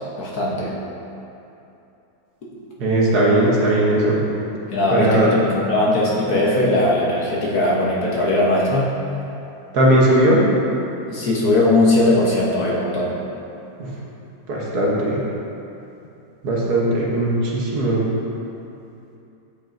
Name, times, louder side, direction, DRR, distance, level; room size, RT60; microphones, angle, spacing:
voice 1, 0.2-0.7 4.7-9.0 11.1-13.1, left 1 dB, 55° left, -4 dB, 1.4 m, -19 dB
voice 2, 2.8-4.2 4.9-5.3 9.7-10.4 13.8-13.9 14.5-15.2 16.4-18.1, right 1 dB, 60° right, -4 dB, 1.4 m, -18 dB
8.8 x 7.8 x 2.6 m, 2.8 s
omnidirectional pair, 2.1 m